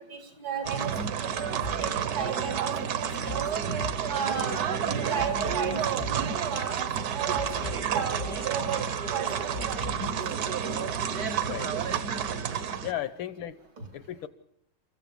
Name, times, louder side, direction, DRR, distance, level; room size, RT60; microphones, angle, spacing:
voice 1, 0.1-0.9 1.2-3.6 4.1-4.7 5.1-7.5 7.9-9.3 9.7-9.9 12.3-12.4 13.8-13.9, right 7 dB, 85° right, 4 dB, 4.9 m, -34 dB
sound 1, 0.6-12.9, right 7 dB, 55° right, 1.4 m, -30 dB
sound 2, 1.6-1.9 2.2-2.3 3.3-3.5 3.8-4.1 4.4-4.5 5.2-5.7 6.0-6.3 6.5-6.6 7.4-7.9 8.2-8.4 8.7-8.8 9.5-10.1, left 4 dB, 45° left, 0.7 m, -39 dB
voice 2, 12.8-13.6 13.9-14.3, left 12 dB, 85° left, 15 dB, 1.8 m, -35 dB
29.0 x 15.0 x 7.0 m, 0.77 s
omnidirectional pair, 2.1 m